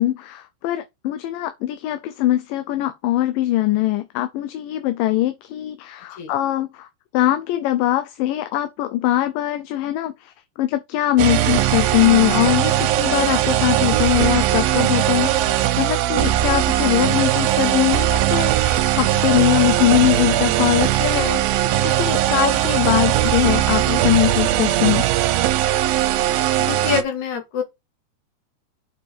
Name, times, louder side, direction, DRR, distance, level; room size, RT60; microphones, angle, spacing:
voice 1, 0.0-6.9 7.1-21.4 21.8-25.1, left 14 dB, 80° left, 2.3 m, -21 dB
sound 1, 11.2-27.0, right 13 dB, 90° right, 2.6 m, -19 dB
voice 2, 26.6-27.6, left 7 dB, 60° left, 3.3 m, -25 dB
6.9 x 5.6 x 5.0 m
omnidirectional pair, 4.1 m